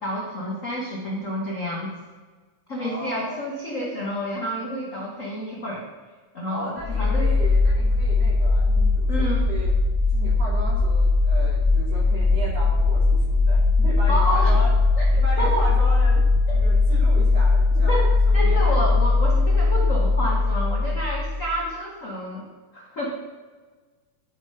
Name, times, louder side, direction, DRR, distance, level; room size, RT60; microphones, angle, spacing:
voice 1, 0.0-1.9 2.7-5.8 6.3-7.3 9.1-9.5 14.1-14.5 15.0-15.1 15.4-15.6 16.5-16.6 17.7-18.1 18.3-22.5 22.7-23.1, equal, 60° left, -3 dB, 0.8 m, -29 dB
voice 2, 2.8-3.4 6.5-9.7 10.1-14.7 15.1-16.2 16.5-18.9, right 1 dB, 50° right, -5 dB, 3.9 m, -36 dB
sound 1, 6.8-21.6, left 3 dB, 15° left, 1.0 m, -19 dB
10.5 x 4.9 x 5.6 m, 1.4 s
omnidirectional pair, 3.8 m